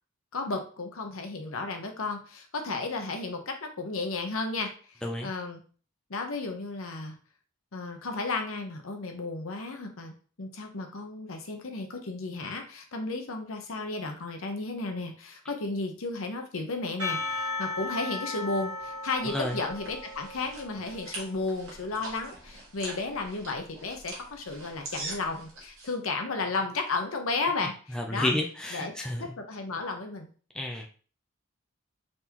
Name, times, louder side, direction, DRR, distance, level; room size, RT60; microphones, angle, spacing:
voice 1, 0.3-5.6 6.1-7.2 7.7-28.3 28.7-28.9 29.2-30.3, left 3 dB, 75° left, 4 dB, 0.8 m, -33 dB
Percussion / Church bell, 17.0-21.5, left 2 dB, 55° right, 1.9 m, -36 dB
sound 1, 18.8-25.9, right 2 dB, 75° right, 1.5 m, -44 dB
voice 2, 27.9-29.2 30.5-30.9, left 1 dB, 5° left, 0 dB, 0.4 m, -30 dB
4.0 x 3.5 x 2.9 m, 0.40 s
head